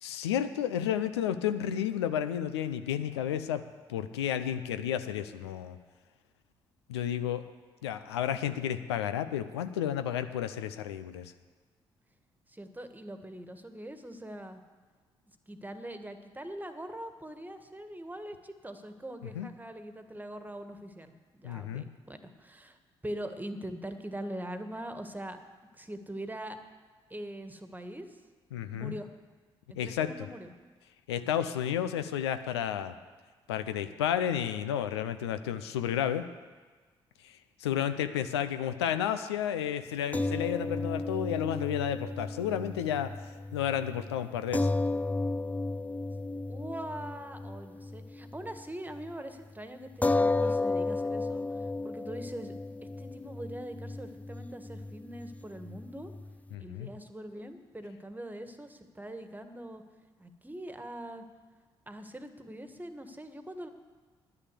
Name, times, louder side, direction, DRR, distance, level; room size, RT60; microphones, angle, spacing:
voice 1, 0.0-3.6 3.9-5.8 6.9-7.4 7.8-11.3 19.4-19.5 21.4-21.9 28.5-28.9 29.8-30.1 31.1-32.9 33.5-36.3 37.6-43.2 43.5-44.7 56.5-56.9, left 10 dB, 85° left, 10 dB, 0.5 m, -31 dB
voice 2, 12.5-14.6 15.5-22.8 23.0-25.4 25.7-26.6 27.1-28.2 28.7-29.1 29.7-30.5 46.5-56.1 56.6-59.8 60.2-61.2 61.9-63.7, right 1 dB, 15° right, 8 dB, 1.6 m, -42 dB
sound 1, 40.1-48.6 49.0-49.1 50.0-56.6, left 2 dB, 10° left, 0.5 m, -33 dB
10.5 x 9.8 x 8.3 m, 1.4 s
hypercardioid pair, 45°, 13 cm